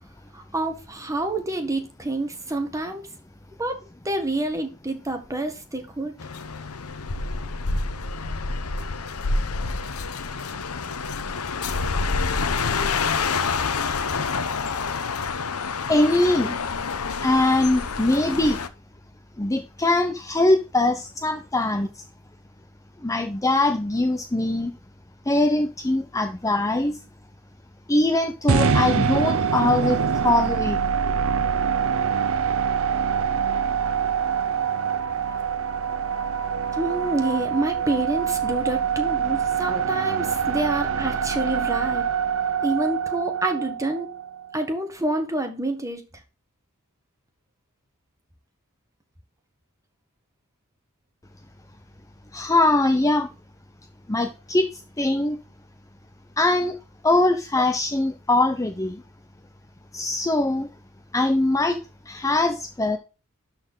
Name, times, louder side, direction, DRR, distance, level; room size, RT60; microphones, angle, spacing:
voice 1, 0.3-3.0 3.6-3.8 4.0-6.1 36.7-42.1 42.6-44.1 44.5-46.0, right 2 dB, 15° right, 5 dB, 1.6 m, -27 dB
sound 1, 6.2-18.7, left 4 dB, 85° left, 0.8 m, -27 dB
voice 2, 15.9-16.6 17.2-18.6 19.4-22.0 23.0-24.7 25.3-27.0 27.9-30.8 52.3-53.3 54.1-55.4 56.4-56.8 57.0-59.0 59.9-60.7 61.1-61.8 62.1-63.0, left 2 dB, 15° left, 7 dB, 0.6 m, -22 dB
sound 2, 28.5-44.6, right 6 dB, 65° right, 0.8 m, -25 dB
12.0 x 4.4 x 3.8 m, 0.31 s
head